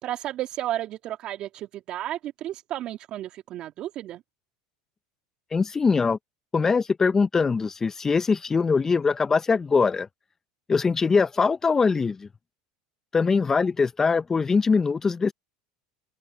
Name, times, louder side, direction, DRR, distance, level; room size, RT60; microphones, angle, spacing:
voice 1, 0.0-4.2, right 13 dB, 50° right, 2.0 m, -33 dB
voice 2, 5.5-6.2 6.5-10.1 10.7-12.3 13.1-15.3, left 5 dB, 20° left, 1.0 m, -22 dB
hypercardioid pair, 95°, 2 cm